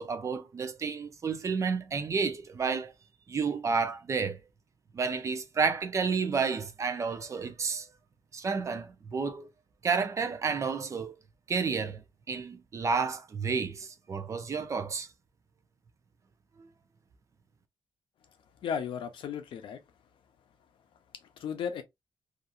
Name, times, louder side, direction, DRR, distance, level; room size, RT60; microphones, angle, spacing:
voice 1, 0.0-2.9 3.3-4.4 4.9-7.9 8.3-9.4 9.8-11.1 11.5-12.0 12.3-15.1, right 5 dB, 40° right, 0.5 m, -31 dB
voice 2, 18.6-19.8 21.4-21.8, left 7 dB, 90° left, 0.6 m, -34 dB
2.8 x 2.5 x 2.4 m
wide cardioid pair, 155°, 8 cm